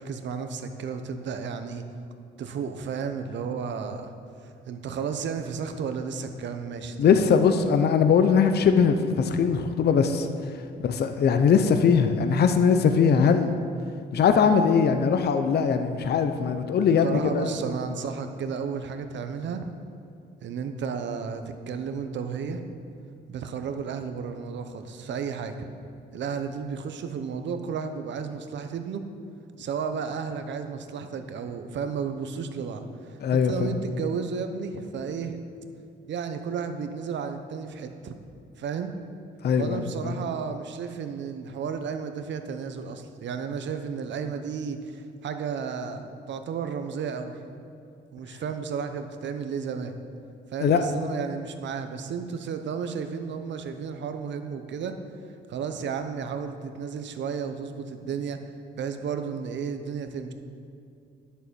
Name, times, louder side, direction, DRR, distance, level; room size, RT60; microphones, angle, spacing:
voice 1, 0.0-1.8 2.4-4.1 4.4-7.2 17.0-19.6 20.4-22.6 23.3-25.7 26.1-29.0 29.6-35.4 36.1-38.2 38.6-38.9 39.6-47.4 48.1-50.0 50.5-55.0 55.2-58.4 58.8-60.3, right 6 dB, 65° right, 7 dB, 1.0 m, -33 dB
voice 2, 7.0-10.3 10.8-13.5 14.1-17.5 33.2-33.7 39.4-39.8 50.6-50.8, left 6 dB, 55° left, 8 dB, 0.7 m, -21 dB
10.5 x 6.8 x 7.0 m, 2.6 s
cardioid pair, 90°, 20 cm